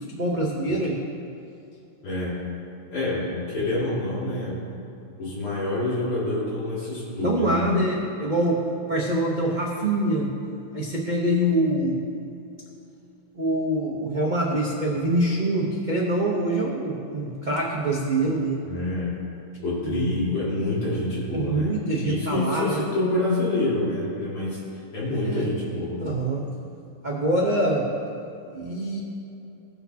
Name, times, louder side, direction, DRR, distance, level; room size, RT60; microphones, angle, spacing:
voice 1, 0.1-1.0 7.2-8.6 8.9-10.3 10.7-12.0 13.4-18.6 19.9-20.3 21.3-22.8 25.2-25.5 26.0-26.5 27.0-27.9 28.5-29.0, right 1 dB, 75° right, -4 dB, 0.4 m, -25 dB
voice 2, 2.0-2.4 2.9-4.6 5.2-7.7 18.6-19.1 19.6-21.8 22.0-24.6 24.9-26.1, left 2 dB, 90° left, -8 dB, 3.4 m, -27 dB
17.0 x 6.1 x 2.8 m, 2.7 s
omnidirectional pair, 2.3 m